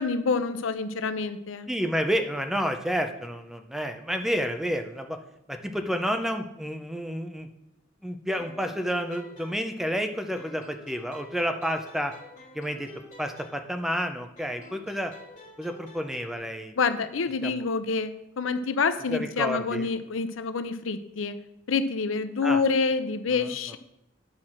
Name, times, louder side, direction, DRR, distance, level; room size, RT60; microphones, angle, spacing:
voice 1, 0.0-1.7 16.8-21.4 21.7-23.8, left 4 dB, 75° left, 11 dB, 0.6 m, -27 dB
voice 2, 1.7-5.2 5.5-7.5 8.0-12.1 12.5-12.9 13.2-15.1 15.6-16.7 17.4-17.6 19.1-19.9 22.4-22.6 23.3-23.8, equal, ahead, 6 dB, 0.5 m, -30 dB
sound 1, 8.4-10.0 10.4-14.0 14.4-16.4, left 1 dB, 40° left, 2.1 m, -49 dB
9.7 x 6.2 x 4.3 m, 0.87 s
head